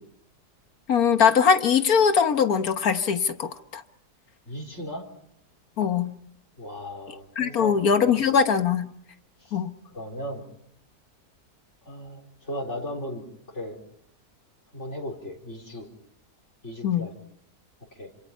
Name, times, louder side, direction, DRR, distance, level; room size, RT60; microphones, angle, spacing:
voice 1, 0.9-3.8 5.8-6.2 7.4-8.9 9.5-9.7 16.8-17.1, left 6 dB, 65° left, 9 dB, 1.6 m, -21 dB
voice 2, 4.5-5.0 6.6-8.2 9.4-9.6 9.9-10.5 11.9-13.2 13.5-13.8 14.7-15.9 16.6-17.1 17.9-18.1, equal, 45° left, 2 dB, 4.2 m, -36 dB
29.0 x 27.0 x 5.5 m, 0.71 s
omnidirectional pair, 1.7 m